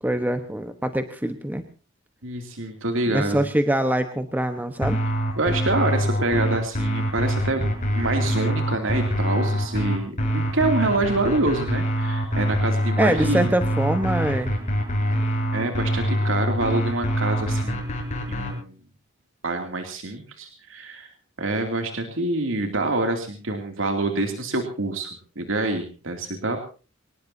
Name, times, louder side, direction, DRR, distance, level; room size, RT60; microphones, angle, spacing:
voice 1, 0.0-1.6 3.1-5.0 13.0-14.5, right 1 dB, 10° right, 7 dB, 1.1 m, -24 dB
voice 2, 2.2-3.4 5.4-13.5 15.5-17.9 18.3-18.7 19.4-21.1 21.4-26.6, right 2 dB, 75° right, 4 dB, 2.7 m, -26 dB
sound 1, 4.8-18.5, equal, 40° left, 7.6 m, -24 dB
24.0 x 19.0 x 2.8 m, 0.36 s
head